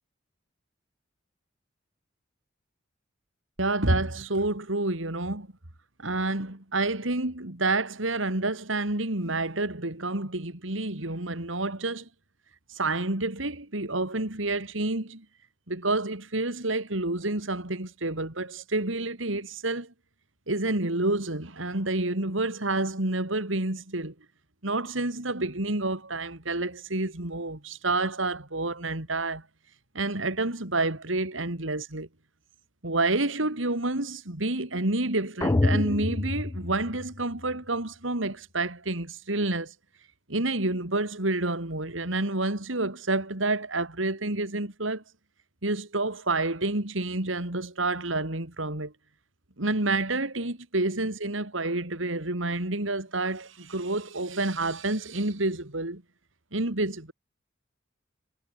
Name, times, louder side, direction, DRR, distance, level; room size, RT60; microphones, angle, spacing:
voice 1, 3.6-5.5 6.0-12.1 12.7-15.2 15.7-19.9 20.5-24.1 24.6-29.4 29.9-32.1 32.8-39.7 40.3-45.0 45.6-48.9 49.6-56.0 56.5-57.1, right 2 dB, 85° right, 3.4 m, -29 dB
sound 1, 35.4-37.5, left 2 dB, 15° left, 0.3 m, -27 dB
head